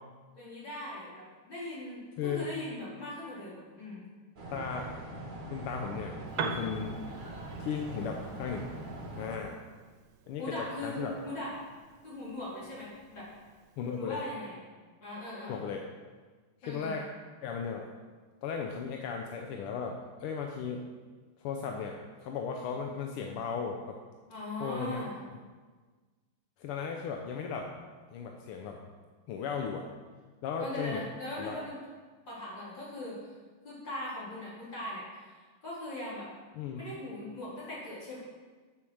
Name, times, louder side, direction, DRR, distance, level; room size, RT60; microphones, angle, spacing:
voice 1, 0.3-4.0 10.4-11.5 12.0-13.3 14.0-14.6 15.0-15.6 16.6-17.0 24.3-25.2 30.6-31.8 32.3-33.2 33.6-36.3 36.7-38.2, left 1 dB, 55° left, -8 dB, 4.3 m, -40 dB
voice 2, 2.2-2.5 4.5-4.9 5.5-7.0 7.6-8.7 9.2-9.6 10.3-11.1 13.8-14.2 15.5-15.8 16.6-17.0 17.4-17.9 18.4-20.8 21.4-22.0 22.2-24.0 24.6-25.1 26.6-27.7 28.1-28.8 29.3-29.8 30.4-31.0 31.4-31.6 36.5-36.8, left 6 dB, 85° left, 2 dB, 1.7 m, -36 dB
sound 1, 4.4-9.4, right 1 dB, 30° right, 0.9 m, -42 dB
Piano, 6.3-14.1, right 5 dB, 70° right, 1.5 m, -44 dB
7.6 x 7.2 x 6.3 m, 1.4 s
omnidirectional pair, 2.4 m